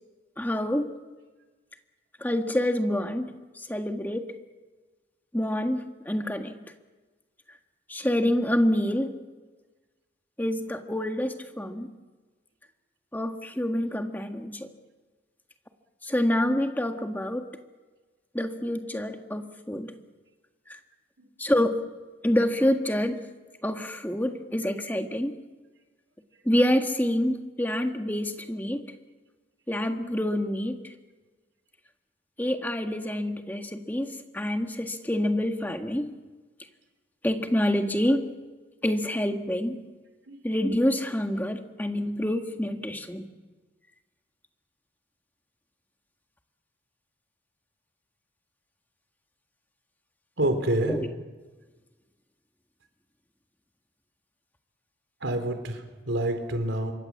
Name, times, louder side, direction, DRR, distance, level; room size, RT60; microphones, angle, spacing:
voice 1, 0.4-0.9 2.2-4.3 5.3-6.5 7.9-9.2 10.4-11.9 13.1-14.7 16.0-17.5 18.3-19.9 20.7-20.8 21.4-21.8 22.2-23.2 23.6-25.3 26.4-28.9 29.7-30.8 32.4-36.1 37.2-38.3 38.8-39.8 40.4-43.3 50.8-51.1, left 1 dB, 10° left, 5 dB, 1.7 m, -27 dB
voice 2, 50.4-51.0 55.2-56.9, right 1 dB, 80° right, 7 dB, 4.0 m, -27 dB
27.0 x 23.5 x 7.4 m, 1.3 s
head